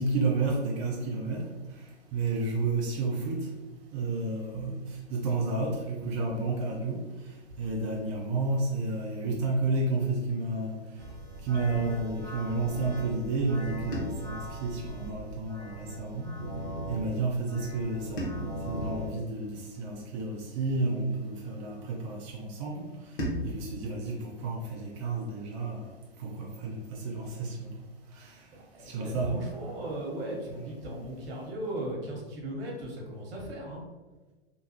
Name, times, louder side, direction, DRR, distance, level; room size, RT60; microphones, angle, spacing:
voice 1, 0.0-1.8 2.1-3.5 3.9-7.0 7.6-10.8 11.4-16.3 16.9-22.9 23.4-25.9 26.2-27.7 28.1-28.4 28.8-29.4, right 3 dB, 30° right, -1 dB, 0.4 m, -31 dB
sound 1, 11.0-19.1, right 1 dB, 5° left, 1.0 m, -40 dB
sound 2, 13.9-16.3 18.2-20.7 23.2-25.7, equal, 55° left, 1.0 m, -41 dB
voice 2, 28.5-33.8, right 1 dB, 60° right, -2 dB, 1.1 m, -37 dB
2.9 x 2.2 x 2.8 m, 1.2 s
hypercardioid pair, 110°, 33 cm